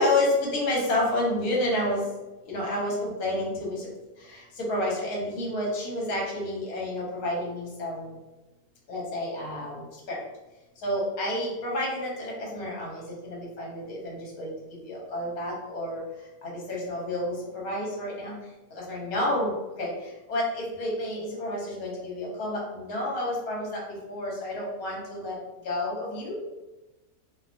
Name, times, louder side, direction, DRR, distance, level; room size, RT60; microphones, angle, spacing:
voice 1, 0.0-2.0 2.5-3.9 4.3-4.4 4.7-8.1 8.9-10.2 10.8-14.5 14.9-16.0 16.4-18.3 18.9-19.5 19.8-19.9 20.3-23.8 24.1-25.3 25.6-26.3, left 1 dB, 75° left, -3 dB, 1.2 m, -29 dB
2.6 x 2.3 x 2.4 m, 1.1 s
omnidirectional pair, 1.6 m